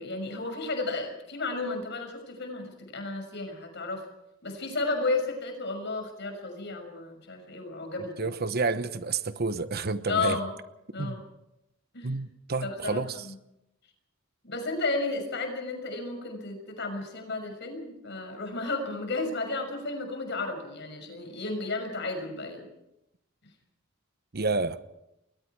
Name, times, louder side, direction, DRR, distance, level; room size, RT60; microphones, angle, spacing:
voice 1, 0.0-4.0 4.4-8.1 10.1-10.5 10.9-11.2 11.9-12.1 12.6-13.0 14.4-22.6, left 3 dB, 60° left, 6.3 m, -33 dB
voice 2, 8.2-10.4 11.0-11.2 12.0-13.3 24.3-24.8, right 3 dB, 50° right, 1.0 m, -29 dB
29.5 x 22.0 x 4.7 m
head